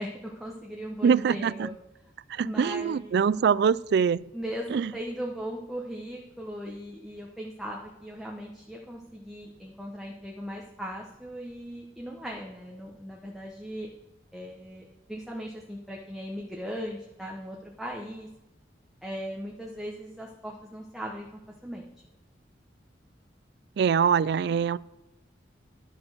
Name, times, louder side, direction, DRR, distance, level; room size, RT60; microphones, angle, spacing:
voice 1, 0.0-1.7 2.4-3.2 4.3-13.9 14.3-18.3 19.0-21.9, equal, ahead, 1.1 m, -38 dB
voice 2, 1.0-1.7 2.3-4.2 4.7-4.9 23.8-24.8, right 6 dB, 65° right, 0.3 m, -24 dB
11.0 x 6.3 x 6.4 m
head